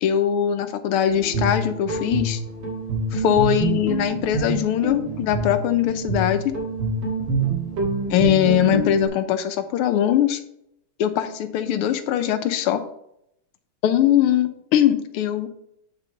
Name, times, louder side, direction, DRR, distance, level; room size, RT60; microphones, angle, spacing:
voice 1, 0.0-2.4 3.1-6.5 8.1-10.4 11.0-12.8 13.8-15.5, left 10 dB, 85° left, 10 dB, 1.6 m, -21 dB
Guitar, 1.1-9.1, right 3 dB, 85° right, 2.8 m, -26 dB
8.3 x 5.4 x 3.9 m, 0.75 s
omnidirectional pair, 2.4 m